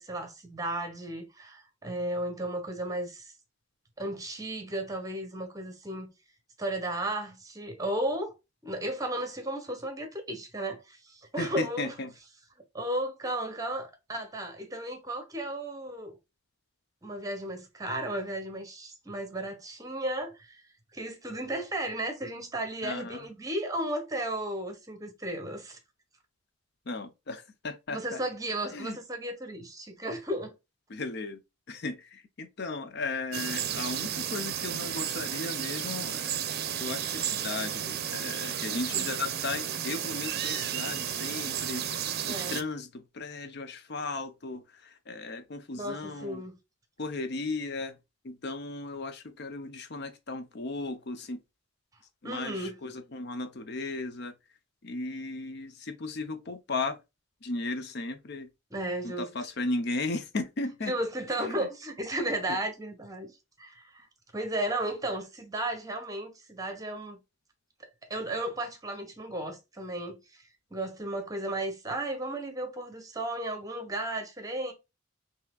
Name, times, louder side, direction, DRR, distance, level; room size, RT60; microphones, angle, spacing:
voice 1, 0.0-3.3 4.0-6.1 6.6-8.3 8.6-12.0 12.7-16.2 17.0-20.6 20.9-25.8 27.9-30.5 38.9-39.1 42.2-42.6 45.7-46.6 52.2-52.8 58.7-59.3 60.9-63.3 63.6-64.1 64.3-67.2 67.8-74.7, right 1 dB, 20° right, 1.1 m, -34 dB
voice 2, 11.4-12.1 22.8-23.2 26.9-28.2 28.7-29.0 30.9-31.4 31.7-36.4 36.8-41.9 42.2-46.4 47.0-48.0 48.2-51.4 52.2-54.3 54.8-57.0 57.4-58.5 59.0-60.9 61.5-61.6 62.5-62.6, left 3 dB, 55° left, 0.7 m, -36 dB
sound 1, 33.3-42.6, right 9 dB, 55° right, 0.6 m, -33 dB
5.8 x 2.9 x 2.3 m
head